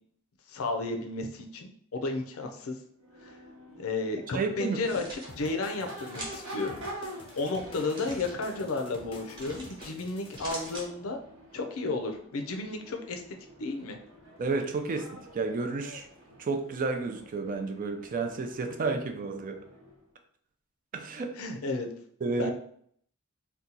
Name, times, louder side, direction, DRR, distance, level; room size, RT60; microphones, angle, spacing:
voice 1, 0.5-2.8 3.2-3.4 3.8-6.8 7.4-11.2 11.5-13.2 13.6-14.0 21.4-21.9 22.4-22.5, left 3 dB, 75° left, 3 dB, 0.5 m, -33 dB
Crowd / Race car auto racing / Accelerating revving vroom, 3.0-20.1, right 1 dB, 80° right, 0.9 m, -47 dB
voice 2, 4.3-4.8 14.4-16.1 16.4-19.6 20.9-21.4 22.2-22.5, right 3 dB, 40° right, 5 dB, 0.4 m, -31 dB
sound 1, 4.7-5.3 6.1-6.5 7.7-8.3 9.3-9.9 10.2-10.9, right 1 dB, 20° right, 1.0 m, -43 dB
sound 2, 5.3-10.8, left 2 dB, 25° left, 0.5 m, -49 dB
2.8 x 2.3 x 3.8 m, 0.64 s
head